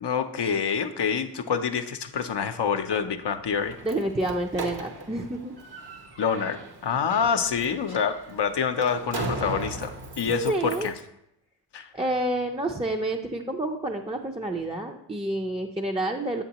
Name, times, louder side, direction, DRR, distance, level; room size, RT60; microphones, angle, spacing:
voice 1, 0.0-3.8 6.2-10.9 11.7-11.9, left 6 dB, 65° left, 6 dB, 0.6 m, -27 dB
Slam, 3.5-11.0, right 2 dB, 60° right, 1.1 m, -38 dB
voice 2, 3.8-5.6 10.2-10.9 11.9-16.4, right 1 dB, 15° right, 2 dB, 0.6 m, -29 dB
7.8 x 7.2 x 2.9 m, 0.80 s
cardioid pair, 40°, 44 cm